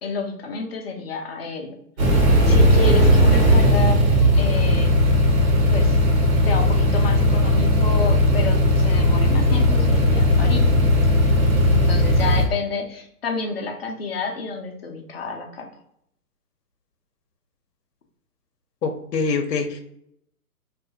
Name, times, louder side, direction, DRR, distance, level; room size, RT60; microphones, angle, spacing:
voice 1, 0.0-1.7 2.4-4.0 4.3-4.9 5.7-6.0 6.5-10.9 11.7-15.7, left 4 dB, 40° left, 2 dB, 0.5 m, -29 dB
sound 1, 2.0-12.5, equal, 60° right, 1.2 m, -17 dB
voice 2, 18.8-19.8, left 4 dB, 85° left, 5 dB, 0.7 m, -24 dB
2.6 x 2.3 x 2.6 m, 0.73 s
hypercardioid pair, 145°, 47 cm